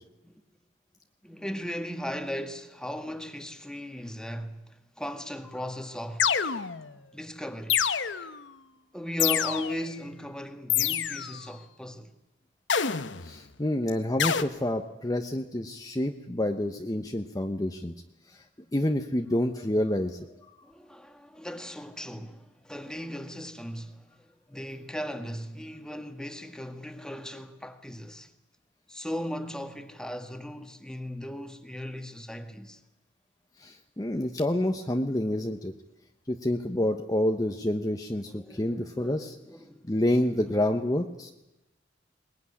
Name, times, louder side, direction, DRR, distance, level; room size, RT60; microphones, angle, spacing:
voice 1, 1.2-6.3 7.1-7.8 8.9-12.1 20.6-28.3 28.9-32.8 38.3-39.9 40.6-40.7, equal, 5° left, 1.8 m, -37 dB
sound 1, 6.2-6.9 7.7-8.4 9.2-9.9 10.7-11.4 12.7-13.3 14.2-14.4, left 8 dB, 85° left, 1.1 m, -27 dB
voice 2, 13.2-17.9 18.7-20.2 33.6-35.7 36.3-39.3 39.9-41.3, left 1 dB, 20° left, 1.0 m, -28 dB
21.5 x 20.0 x 9.9 m
head